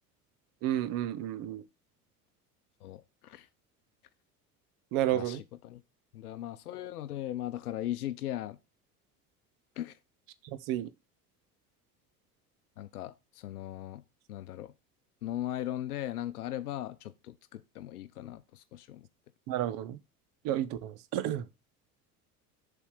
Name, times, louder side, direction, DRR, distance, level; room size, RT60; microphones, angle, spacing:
voice 1, 0.6-1.6 4.9-5.4 10.7-10.9 19.5-20.0 20.4-21.4, right 12 dB, 45° right, 0.9 m, -31 dB
voice 2, 2.8-3.5 5.1-5.8 6.1-8.6 9.8-10.0 12.8-14.0 14.3-14.7 15.2-19.1, left 13 dB, 75° left, 0.7 m, -38 dB
7.0 x 3.5 x 6.1 m
figure-of-eight pair, 65°, 46 cm